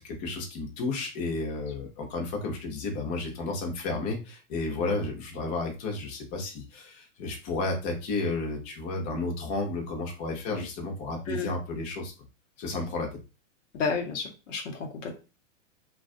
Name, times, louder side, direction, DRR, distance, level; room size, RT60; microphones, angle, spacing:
voice 1, 0.0-12.1 12.6-13.1, left 3 dB, 35° left, 1 dB, 0.8 m, -32 dB
voice 2, 13.7-15.2, left 5 dB, 70° left, 2 dB, 0.8 m, -32 dB
2.4 x 2.3 x 2.4 m, 0.32 s
hypercardioid pair, 125°, 38 cm